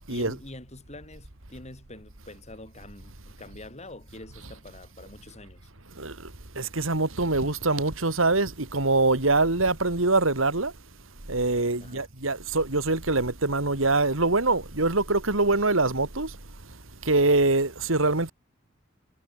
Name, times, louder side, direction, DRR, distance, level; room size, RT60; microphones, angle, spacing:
voice 1, 0.1-5.7 11.8-12.1, left 2 dB, 35° left, 8.0 m, -45 dB
voice 2, 6.6-10.7 11.3-16.3 17.0-18.3, right 2 dB, 90° right, 3.0 m, -24 dB
head